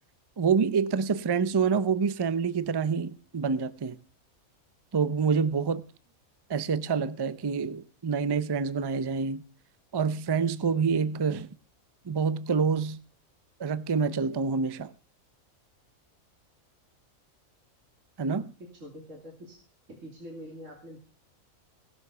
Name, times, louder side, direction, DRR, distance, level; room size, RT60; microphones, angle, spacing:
voice 1, 0.4-4.0 4.9-5.8 6.5-9.4 9.9-11.5 12.1-13.0 13.6-14.9 18.2-18.5, right 5 dB, 40° right, 0.3 m, -27 dB
voice 2, 18.8-19.6 19.9-21.0, equal, 60° right, 3.2 m, -44 dB
18.5 x 6.9 x 6.8 m
omnidirectional pair, 1.4 m